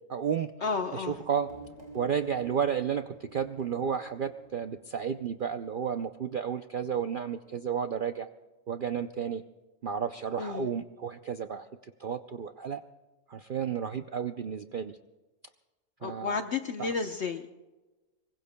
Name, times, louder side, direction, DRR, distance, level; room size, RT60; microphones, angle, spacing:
voice 1, 0.1-0.5 0.9-1.5 1.9-8.3 8.7-9.4 9.8-12.8 13.3-15.0 16.0-16.4 16.8-16.9, right 7 dB, 55° right, 8 dB, 0.6 m, -32 dB
voice 2, 0.6-1.2 10.4-10.6 16.0-17.5, left 4 dB, 55° left, 6 dB, 1.0 m, -32 dB
sound 1, 1.0-6.4, right 2 dB, 25° right, 4.6 m, -51 dB
25.5 x 23.0 x 2.2 m, 1.2 s
omnidirectional pair, 1.5 m